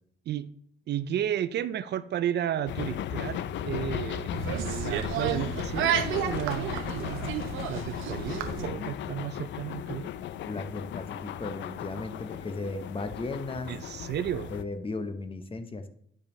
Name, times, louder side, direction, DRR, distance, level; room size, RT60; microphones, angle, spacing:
voice 1, 0.9-10.1 13.7-14.5, right 10 dB, 60° right, 15 dB, 0.4 m, -33 dB
sound 1, 2.7-14.6, left 11 dB, 65° left, 0.4 m, -36 dB
Bass drum, 2.9-8.5, right 3 dB, 20° right, 0.8 m, -48 dB
sound 2, 4.3-8.7, right 8 dB, 90° right, 0.8 m, -31 dB
voice 2, 10.5-13.7 14.5-15.9, left 3 dB, 25° left, 10 dB, 0.9 m, -36 dB
9.7 x 5.1 x 3.1 m, 0.64 s
cardioid pair, 90°, 20 cm